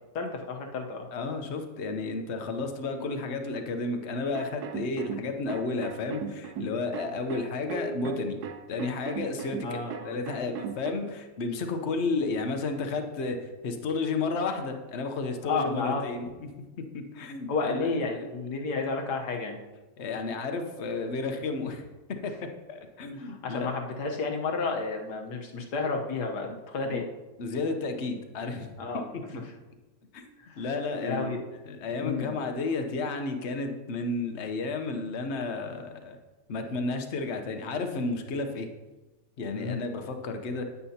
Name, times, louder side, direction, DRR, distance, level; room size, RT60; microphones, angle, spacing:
voice 1, 0.1-1.0 9.6-10.2 15.4-16.0 17.5-19.6 23.2-27.0 28.8-29.3 30.4-30.6 31.0-31.5 32.0-32.4 39.5-39.8, left 4 dB, 75° left, 2 dB, 1.6 m, -31 dB
voice 2, 1.1-8.4 8.7-16.2 16.8-18.2 20.0-21.8 22.2-23.7 26.5-26.6 26.8-27.0 27.4-28.8 30.1-30.3 30.6-31.4 31.7-36.2 36.5-38.7 39.4-40.7, left 3 dB, 50° left, 6 dB, 1.0 m, -32 dB
sound 1, 4.3-10.9, right 6 dB, 75° right, 1.1 m, -37 dB
9.5 x 9.4 x 2.8 m, 1.1 s
omnidirectional pair, 1.8 m